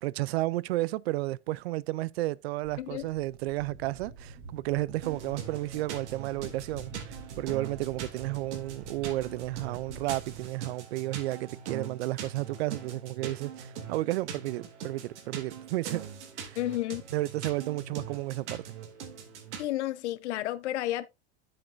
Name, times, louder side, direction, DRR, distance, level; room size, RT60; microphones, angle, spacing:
voice 1, 0.0-16.0 16.4-16.6 17.1-18.6, right 18 dB, 65° right, 0.5 m, -32 dB
sound 1, 2.6-10.5, right 4 dB, 35° right, 3.8 m, -47 dB
voice 2, 2.8-3.1 16.6-17.0 19.6-21.1, left 14 dB, 75° left, 0.8 m, -31 dB
sound 2, 5.0-19.7, right 7 dB, 80° right, 2.4 m, -42 dB
10.0 x 7.7 x 2.5 m
supercardioid pair, 175°, 34 cm